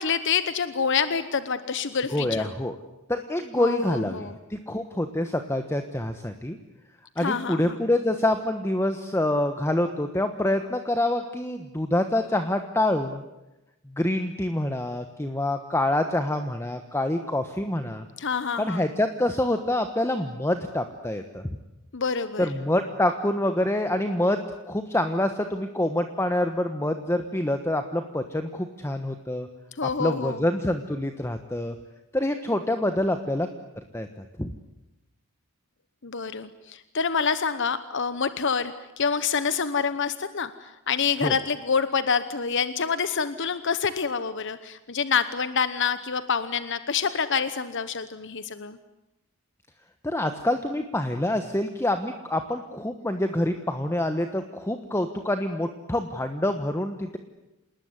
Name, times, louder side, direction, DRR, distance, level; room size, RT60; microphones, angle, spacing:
voice 1, 0.0-2.5 3.6-4.4 7.2-7.8 18.2-18.8 21.9-22.5 29.7-30.4 36.0-48.8, left 6 dB, 55° left, 13 dB, 1.0 m, -27 dB
voice 2, 2.1-2.7 3.1-6.6 7.2-13.2 14.0-18.0 18.6-21.5 22.4-29.5 29.8-31.7 32.1-33.5 33.9-34.5 41.2-41.3 50.0-57.2, left 1 dB, 10° left, 7 dB, 1.2 m, -26 dB
28.0 x 20.0 x 9.7 m, 0.98 s
head